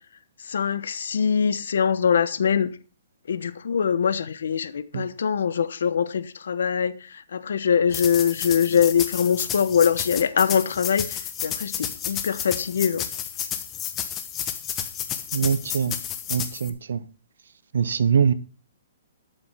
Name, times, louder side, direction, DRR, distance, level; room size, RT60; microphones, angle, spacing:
voice 1, 0.4-2.7 3.3-13.1, left 7 dB, 75° left, 1.1 m, -23 dB
sound 1, 7.9-16.7, left 9 dB, 20° left, 1.1 m, -31 dB
voice 2, 15.3-16.0 16.3-17.1 17.7-18.3, right 7 dB, 75° right, 0.9 m, -23 dB
12.5 x 6.9 x 5.6 m
hypercardioid pair, 160°, 0 cm